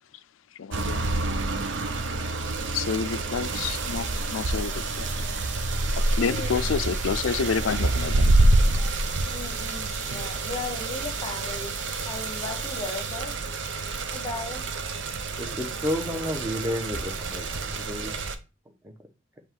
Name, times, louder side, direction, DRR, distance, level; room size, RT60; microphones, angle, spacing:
voice 1, 0.6-1.0 2.7-4.7 5.0-5.1 6.2-8.3, left 6 dB, 80° left, 0.4 m, -28 dB
sound 1, 0.7-18.3, right 2 dB, 65° right, 0.7 m, -27 dB
sound 2, 3.4-13.2, right 5 dB, 40° right, 0.9 m, -39 dB
voice 2, 6.2-6.6 9.3-11.8 12.1-13.3 14.1-14.6, left 3 dB, 25° left, 0.9 m, -36 dB
voice 3, 15.4-18.1 18.8-18.9, equal, 10° right, 1.0 m, -31 dB
7.3 x 3.1 x 4.6 m
head